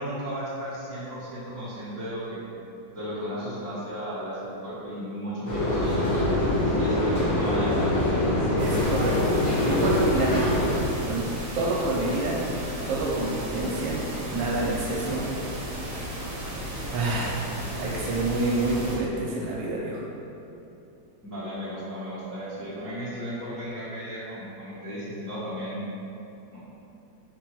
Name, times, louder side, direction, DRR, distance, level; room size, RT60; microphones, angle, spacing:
voice 1, 0.0-2.4 2.9-6.1 6.6-8.0 21.2-25.9, equal, 15° left, -12 dB, 0.6 m, -34 dB
sound 1, 5.5-10.8, left 1 dB, 75° left, 1.8 m, -24 dB
voice 2, 8.5-9.2 9.7-10.3 11.0-11.3 11.5-12.4 12.9-14.0 14.3-15.2 16.9-17.4 17.8-20.0, right 2 dB, 75° right, -3 dB, 1.2 m, -27 dB
sound 2, 8.6-19.0, equal, 55° right, 1.1 m, -34 dB
4.2 x 2.3 x 4.4 m, 2.8 s
omnidirectional pair, 2.0 m